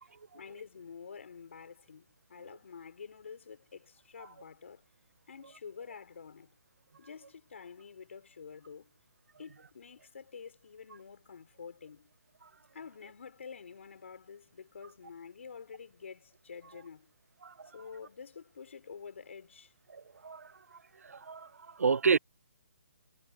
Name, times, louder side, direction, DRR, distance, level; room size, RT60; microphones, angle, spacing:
voice 1, 0.3-4.9 5.3-6.5 7.0-8.9 9.4-12.1 12.7-17.1 17.6-19.7, left 6 dB, 60° left, 4.0 m, -48 dB
voice 2, 19.9-20.5 21.0-22.2, right 5 dB, 85° right, 0.6 m, -30 dB
hypercardioid pair, 170°, 8 cm